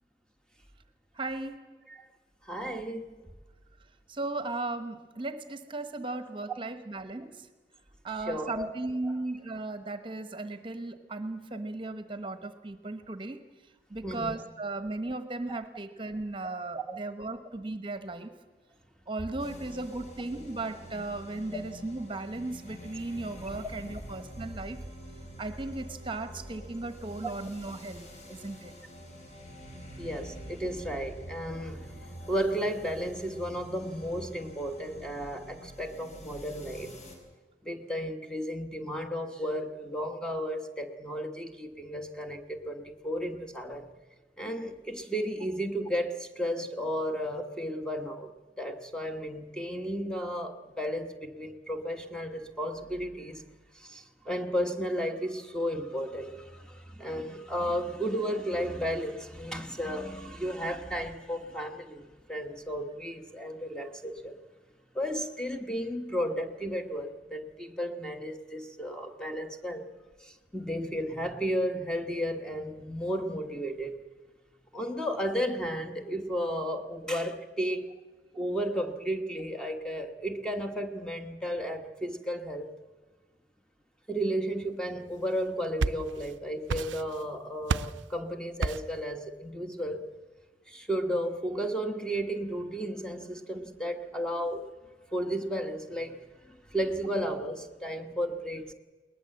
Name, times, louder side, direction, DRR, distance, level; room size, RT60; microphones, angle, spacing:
voice 1, 1.1-1.7 4.1-7.5 8.0-13.4 13.9-18.3 19.1-24.8 25.4-28.7, right 2 dB, 25° right, 10 dB, 1.1 m, -36 dB
voice 2, 2.5-3.1 8.3-8.7 9.0-9.1 14.0-14.3 16.9-17.0 30.0-32.0 32.3-36.9 37.6-43.9 44.4-48.3 48.6-53.4 53.8-64.4 64.9-69.9 70.2-74.0 74.7-77.9 78.3-82.7 84.1-90.1 90.7-94.6 95.1-96.2 96.5-98.7, equal, 5° left, 5 dB, 1.2 m, -33 dB
sound 1, 19.4-37.2, equal, 40° left, 4.8 m, -46 dB
sound 2, 85.4-86.3 86.7-87.3 87.7-88.0 88.6-89.0, right 3 dB, 80° right, 0.6 m, -31 dB
21.5 x 19.5 x 7.8 m, 1.4 s
head